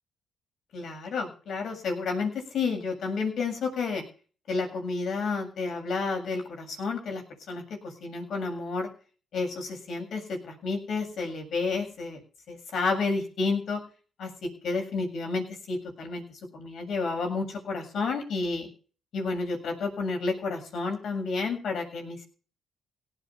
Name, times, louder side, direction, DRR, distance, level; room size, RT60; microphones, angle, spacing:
voice 1, 0.7-4.0 4.5-8.9 9.3-12.2 12.5-13.8 14.2-16.2 16.5-18.7 19.1-22.2, left 4 dB, 65° left, 3 dB, 7.3 m, -31 dB
18.0 x 8.3 x 7.3 m, 0.38 s
cardioid pair, 90°, 0 cm